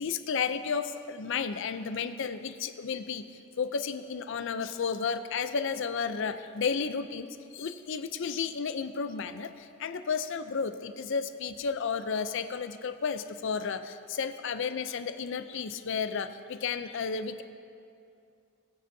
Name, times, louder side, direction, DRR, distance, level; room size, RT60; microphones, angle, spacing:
voice 1, 0.0-3.2 3.6-17.4, left 6 dB, 60° left, 10 dB, 0.5 m, -32 dB
20.0 x 7.7 x 2.7 m, 2.5 s
head